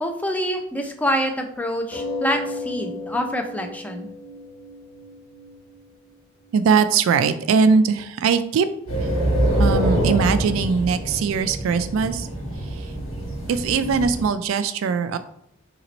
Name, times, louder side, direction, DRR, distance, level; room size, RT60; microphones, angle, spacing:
voice 1, 0.0-4.1, equal, 5° left, 4 dB, 0.4 m, -26 dB
sound 1, 1.9-6.9 7.7-7.8 8.1-8.2, left 2 dB, 50° left, 1.0 m, -34 dB
voice 2, 6.5-8.7 9.0-9.1 9.6-12.3 12.7-12.9 13.5-15.2, right 5 dB, 75° right, 11 dB, 0.3 m, -21 dB
sound 2, 8.9-14.3, right 1 dB, 85° left, 1.5 m, -24 dB
2.9 x 2.9 x 3.9 m, 0.74 s
head